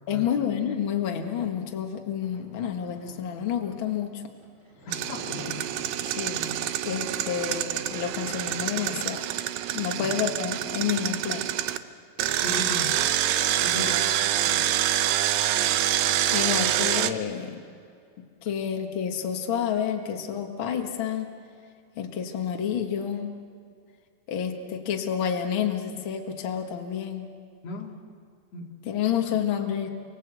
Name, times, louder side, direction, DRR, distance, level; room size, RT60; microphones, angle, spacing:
voice 1, 0.1-4.2 6.2-9.2 9.7-11.4 13.7-14.0 14.4-14.7 15.4-15.5 16.3-17.6 18.2-21.3 22.0-23.3 24.3-27.3 28.8-29.9, left 8 dB, 85° left, 3 dB, 1.1 m, -29 dB
sound 1, 1.5-6.7 7.2-9.3 9.8-9.9 10.1-11.9, right 1 dB, 15° right, 3.9 m, -49 dB
voice 2, 4.9-5.7 8.7-9.0 9.9-10.2 12.4-13.0 13.6-14.1 27.6-28.0 28.5-28.8, left 3 dB, 45° left, 0 dB, 3.1 m, -37 dB
Engine, 4.9-11.8 12.2-17.1, right 12 dB, 85° right, 1.9 m, -26 dB
28.5 x 24.0 x 8.2 m, 2.3 s
omnidirectional pair, 5.1 m